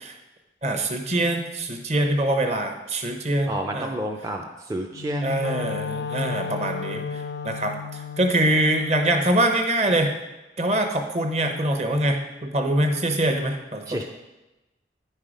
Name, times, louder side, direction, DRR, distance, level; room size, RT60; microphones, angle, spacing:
voice 1, 0.6-3.9 5.2-10.2 10.6-14.0, right 1 dB, 35° right, 5 dB, 0.9 m, -24 dB
voice 2, 3.5-5.3 13.9-14.0, right 1 dB, 15° right, 1 dB, 0.4 m, -29 dB
Wind instrument woodwind instrument, 4.9-9.1, left 6 dB, 70° left, 0.3 m, -33 dB
9.6 x 5.6 x 5.0 m, 1.0 s
head